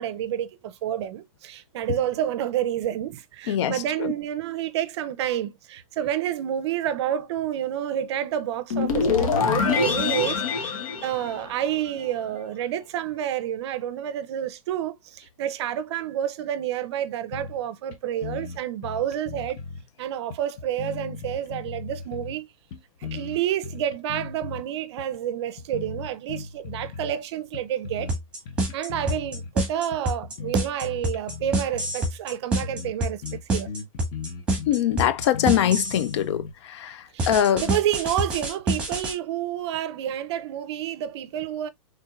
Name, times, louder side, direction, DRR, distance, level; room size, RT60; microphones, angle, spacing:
voice 1, 0.0-19.6 20.0-22.5 23.0-28.1 28.7-33.7 37.1-37.3 37.6-41.7, right 11 dB, 50° right, 0.6 m, -29 dB
sound 1, 8.7-12.0, left 5 dB, 70° left, 1.1 m, -24 dB
sound 2, 17.3-17.7 17.9-18.0 18.2-19.9 20.3-22.4 22.7-24.6 25.0-25.2 25.6-27.2 27.5-28.2 28.5-29.5 29.9-32.0 32.3-32.4 32.6-32.9 33.2-36.5, left 5 dB, 30° left, 0.8 m, -37 dB
sound 3, 28.1-36.1 37.2-39.1, right 1 dB, 5° right, 1.6 m, -26 dB
voice 2, 34.7-36.4 36.8-36.9 37.3-37.6, left 10 dB, 50° left, 0.4 m, -22 dB
4.4 x 3.4 x 2.3 m
hypercardioid pair, 160°, 18 cm